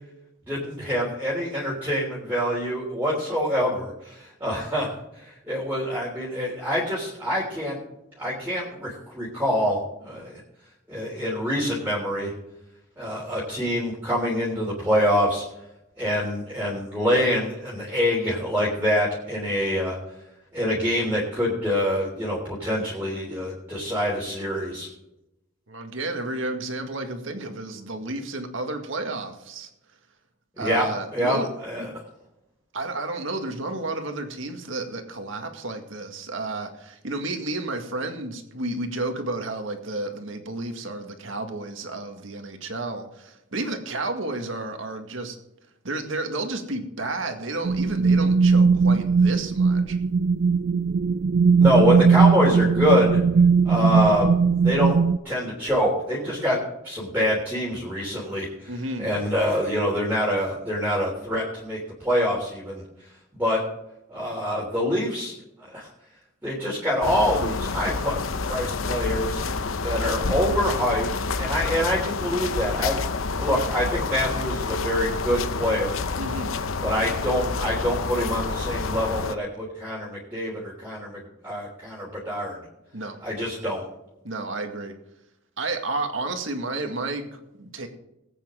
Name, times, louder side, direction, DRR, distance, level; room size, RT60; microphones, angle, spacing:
voice 1, 0.5-4.9 5.1-7.8 8.2-10.4 10.9-12.3 13.0-15.4 16.0-20.0 20.5-24.9 30.6-31.4 31.7-31.9 51.6-53.2 53.6-54.9 55.2-56.6 56.8-58.7 59.0-62.8 63.4-63.6 64.1-65.3 65.6-65.9 66.4-68.2 68.4-69.4 69.8-71.1 71.4-76.0 76.8-82.6 83.2-83.8, equal, 10° right, 3.3 m, -25 dB
voice 2, 25.7-29.7 30.6-31.5 31.8-31.9 32.7-45.4 45.8-50.0 58.7-59.1 76.2-76.6 82.9-83.2 84.2-84.9 85.6-87.9, right 2 dB, 70° right, 2.0 m, -31 dB
sound 1, 47.6-55.2, right 5 dB, 50° right, 0.3 m, -19 dB
sound 2, 67.0-79.4, left 4 dB, 85° left, 0.8 m, -28 dB
20.0 x 9.0 x 3.8 m
head